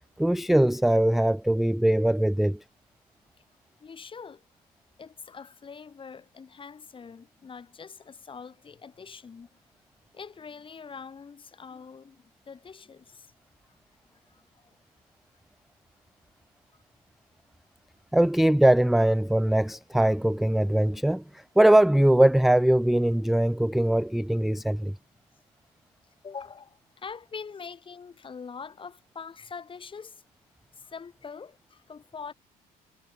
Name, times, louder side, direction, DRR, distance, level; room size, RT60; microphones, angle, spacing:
voice 1, 0.2-2.6 18.1-25.0, right 1 dB, ahead, 0.4 m, -21 dB
voice 2, 3.8-4.4 5.0-9.5 10.1-13.3 14.1-14.4 26.2-30.2 30.8-32.3, left 5 dB, 30° left, 2.2 m, -43 dB
cardioid pair, 110°, 17 cm